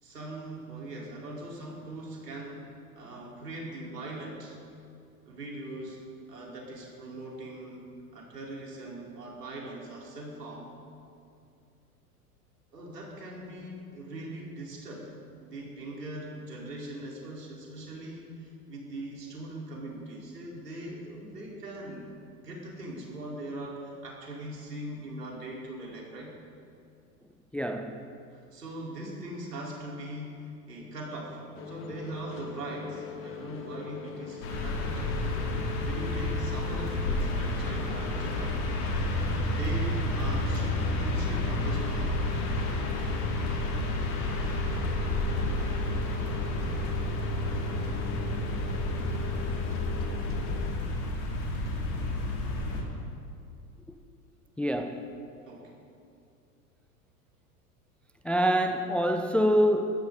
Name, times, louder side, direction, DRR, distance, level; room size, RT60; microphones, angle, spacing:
voice 1, 0.0-2.7 2.9-4.6 5.3-10.7 12.7-22.2 22.4-26.3 28.3-38.7 39.5-42.1 55.5-55.8, right 1 dB, 80° right, -4 dB, 4.7 m, -41 dB
voice 2, 27.5-28.1 54.6-55.1 58.2-60.0, equal, 5° left, 6 dB, 0.4 m, -26 dB
sound 1, 31.5-50.7, left 6 dB, 25° left, 1.5 m, -41 dB
sound 2, 34.4-52.8, left 1 dB, 65° left, 4.8 m, -30 dB
23.5 x 14.0 x 4.2 m, 2.4 s
figure-of-eight pair, 90°, 47 cm